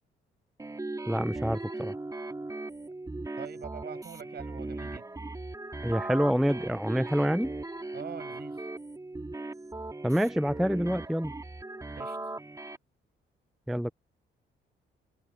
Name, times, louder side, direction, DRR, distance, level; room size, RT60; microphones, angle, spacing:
sound 1, 0.6-12.8, right 2 dB, 15° right, 2.6 m, -38 dB
voice 1, 1.1-1.9 5.8-7.5 10.0-11.3 13.7-13.9, equal, ahead, 0.3 m, -27 dB
voice 2, 3.4-5.0 7.9-8.7 12.0-12.2, right 8 dB, 55° right, 6.4 m, -44 dB
cardioid pair, 90°, 20 cm